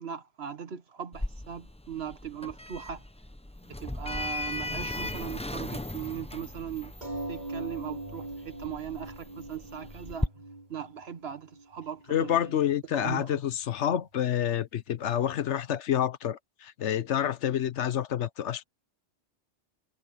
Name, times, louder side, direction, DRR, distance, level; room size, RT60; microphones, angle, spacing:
voice 1, 0.0-3.0 3.8-6.9 7.3-10.3 10.7-12.5 12.9-13.4, right 8 dB, 60° right, 1.4 m, -39 dB
Sliding door, 1.1-10.3, left 2 dB, 10° left, 0.5 m, -37 dB
sound 1, 7.0-12.0 12.8-12.9 13.2-13.3, right 2 dB, 40° right, 5.9 m, -41 dB
voice 2, 12.1-18.6, left 10 dB, 80° left, 1.1 m, -28 dB
omnidirectional pair, 1.2 m